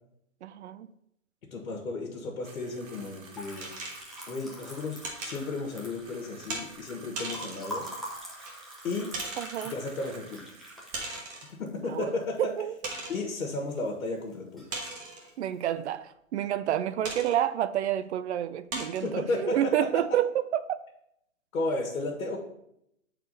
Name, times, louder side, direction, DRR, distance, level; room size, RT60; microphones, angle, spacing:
voice 1, 0.4-0.9 9.4-9.7 11.9-12.8 15.4-20.8, right 11 dB, 55° right, 0.5 m, -29 dB
voice 2, 1.5-3.7 4.3-7.9 8.8-9.1 9.6-10.4 11.6-12.5 13.1-14.6 19.0-19.7 21.5-22.4, left 3 dB, 85° left, 1.6 m, -33 dB
sound 1, 2.4-11.4, right 4 dB, 90° right, 1.8 m, -52 dB
Liquid, 2.9-13.1 13.4-14.1 14.3-15.1, equal, ahead, 0.7 m, -45 dB
sound 2, 3.6-4.3 5.0-5.4 6.5-6.7 7.2-7.7 8.5-8.6 9.1-9.7 10.9-11.6 12.1-12.2 12.8-13.2 14.7-15.3 17.0-17.4 18.0-18.1 18.7-19.1, right 3 dB, 20° right, 1.1 m, -37 dB
7.3 x 4.2 x 4.0 m
hypercardioid pair, 140°, 40 cm